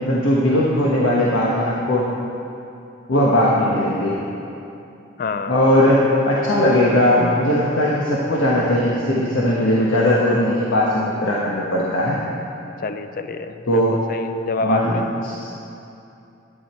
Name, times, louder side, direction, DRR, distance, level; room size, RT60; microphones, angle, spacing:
voice 1, 0.0-2.1 3.1-4.1 5.5-12.2 13.7-14.0 14.6-15.5, left 1 dB, 85° left, -5 dB, 1.2 m, -18 dB
voice 2, 5.2-6.0 12.8-15.1, left 3 dB, 45° left, 9 dB, 0.4 m, -27 dB
11.0 x 8.7 x 4.4 m, 2.7 s
head